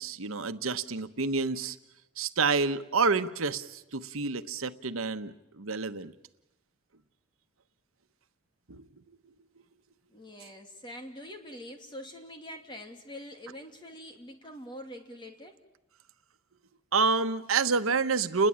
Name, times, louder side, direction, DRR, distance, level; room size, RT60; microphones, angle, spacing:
voice 1, 0.0-1.8 2.2-6.1 8.7-8.9 16.9-18.5, right 4 dB, 85° right, 10 dB, 1.1 m, -28 dB
voice 2, 10.1-15.6, equal, 20° left, 4 dB, 2.7 m, -44 dB
30.0 x 21.0 x 8.8 m, 0.91 s
head